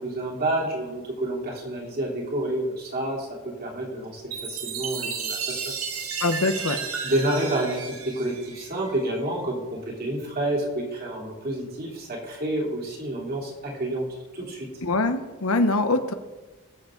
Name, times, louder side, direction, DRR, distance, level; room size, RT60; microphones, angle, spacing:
voice 1, 0.0-6.0 7.0-14.1 14.3-14.7, right 1 dB, 45° right, -3 dB, 3.4 m, -29 dB
Chime, 4.3-9.0, right 5 dB, 80° right, 1.7 m, -33 dB
voice 2, 6.2-6.8 14.8-16.1, left 2 dB, 85° left, 9 dB, 1.0 m, -23 dB
20.0 x 7.6 x 3.9 m, 1.2 s
head